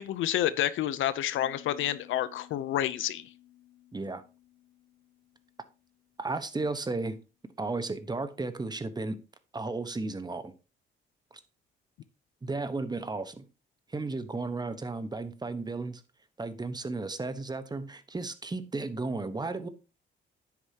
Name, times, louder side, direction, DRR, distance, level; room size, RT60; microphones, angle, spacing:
voice 1, 0.0-3.2, left 12 dB, 80° left, 0.7 m, -29 dB
Piano, 1.4-7.0, left 13 dB, 55° left, 2.5 m, -57 dB
voice 2, 3.9-4.2 6.2-7.2 7.6-9.2 9.5-10.5 12.4-13.4 13.9-16.0 16.4-19.7, right 3 dB, 20° right, 1.1 m, -34 dB
9.8 x 8.1 x 2.9 m
cardioid pair, 90°, 20 cm